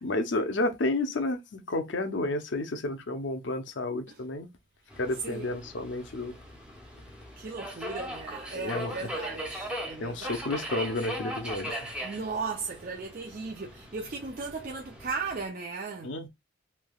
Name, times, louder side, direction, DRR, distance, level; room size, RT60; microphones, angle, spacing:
voice 1, 0.0-4.5 5.0-6.3 8.5-9.1 10.0-12.0 16.0-16.3, left 2 dB, 65° left, 0.6 m, -31 dB
Subway metro underground, 4.9-15.5, equal, 5° right, 0.6 m, -39 dB
voice 2, 7.4-10.4 12.0-16.1, right 4 dB, 45° right, 0.5 m, -36 dB
3.3 x 2.8 x 2.3 m
head